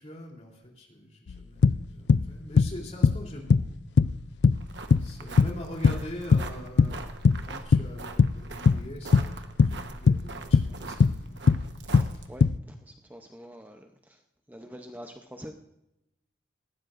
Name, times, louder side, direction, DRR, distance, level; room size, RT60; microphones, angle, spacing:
voice 1, 0.0-3.8 5.0-7.1 7.4-11.4, left 1 dB, 35° left, 0 dB, 3.2 m, -43 dB
sound 1, 1.3-1.4 1.6-2.3 2.6-3.2 3.5-3.7 4.0-4.2 4.4-5.1 5.4-6.5 6.8-7.5 7.7-8.4 8.7-8.9 9.1-9.8 10.1-10.7 11.0-11.2 11.5-11.7 11.9-12.6, left 5 dB, 65° left, 0.4 m, -20 dB
sound 2, 4.5-12.5, right 3 dB, 70° right, 1.1 m, -43 dB
voice 2, 12.3-14.2 14.5-15.5, equal, 10° right, 4 dB, 0.7 m, -46 dB
19.5 x 15.0 x 2.5 m, 0.88 s
head